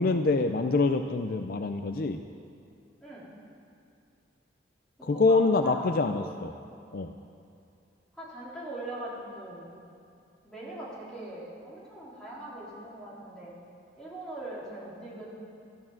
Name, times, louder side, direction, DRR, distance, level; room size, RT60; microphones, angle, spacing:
voice 1, 0.0-2.2 5.0-6.5 6.9-7.1, left 3 dB, 50° left, 7 dB, 0.5 m, -25 dB
voice 2, 5.0-5.4 5.6-5.8 8.1-9.7 10.4-13.5 14.0-15.3, right 1 dB, 5° left, -8 dB, 3.8 m, -41 dB
12.5 x 12.5 x 7.3 m, 2.5 s
head